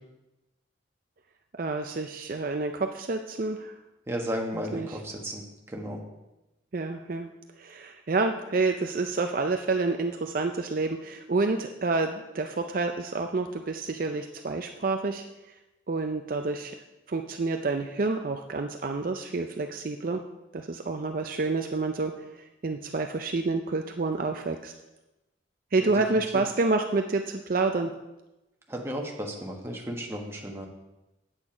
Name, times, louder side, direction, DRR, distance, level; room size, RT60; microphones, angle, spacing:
voice 1, 1.6-3.7 4.5-4.9 6.7-7.3 7.6-15.2 15.9-16.7 17.1-20.2 20.5-24.7 25.7-27.9, right 3 dB, 50° right, 5 dB, 0.5 m, -28 dB
voice 2, 4.1-6.0 25.8-26.4 28.7-30.7, equal, 15° right, 0 dB, 1.3 m, -34 dB
8.8 x 8.5 x 5.0 m, 0.98 s
head